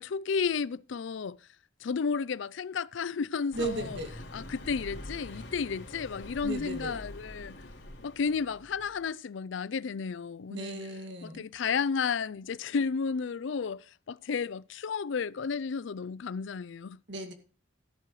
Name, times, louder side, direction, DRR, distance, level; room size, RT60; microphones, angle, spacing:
voice 1, 0.0-1.4 1.8-4.0 4.3-7.6 8.0-10.8 11.2-17.0, left 5 dB, 70° left, 0.4 m, -32 dB
Car passing by, 3.5-9.0, left 1 dB, 55° left, 3.3 m, -45 dB
voice 2, 3.5-4.1 6.4-7.0 10.5-11.4 17.1-17.3, right 2 dB, 60° right, 2.2 m, -36 dB
13.0 x 11.5 x 3.1 m
head